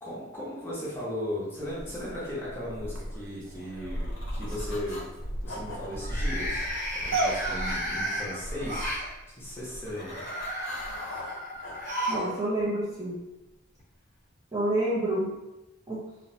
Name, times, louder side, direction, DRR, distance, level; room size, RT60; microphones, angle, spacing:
voice 1, 0.0-5.1 5.4-6.7 7.0-8.9 9.3-10.2, left 1 dB, 10° left, -7 dB, 0.8 m, -36 dB
sound 1, 1.6-10.0 10.4-10.5 10.8-11.0, right 1 dB, 85° right, 0.5 m, -35 dB
sound 2, 2.5-3.1 3.5-3.9 5.9-9.1 9.9-12.3 12.6-12.7 13.8-13.9, equal, 45° right, 1.0 m, -34 dB
sound 3, 3.6-5.1 5.4-7.6 9.4-12.4, left 1 dB, 65° left, 0.5 m, -44 dB
voice 2, 12.1-13.2 14.5-15.3 15.9-16.0, right 1 dB, 20° right, -8 dB, 0.5 m, -28 dB
2.8 x 2.0 x 2.7 m, 0.98 s
head